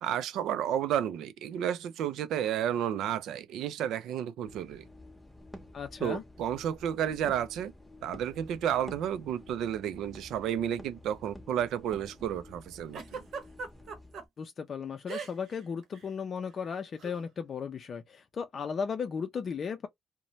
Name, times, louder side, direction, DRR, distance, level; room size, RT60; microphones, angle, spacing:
voice 1, 0.0-4.9 6.0-7.7 8.0-13.2, right 10 dB, 85° right, 0.4 m, -32 dB
sound 1, 4.5-14.3, left 1 dB, 5° left, 0.8 m, -50 dB
voice 2, 5.7-6.2 14.4-19.9, left 6 dB, 50° left, 0.4 m, -36 dB
Giggle, 12.9-14.2 15.1-15.6 15.8-16.1 17.0-17.2, right 5 dB, 65° right, 0.9 m, -39 dB
2.6 x 2.1 x 3.0 m
cardioid pair, 90°, 0 cm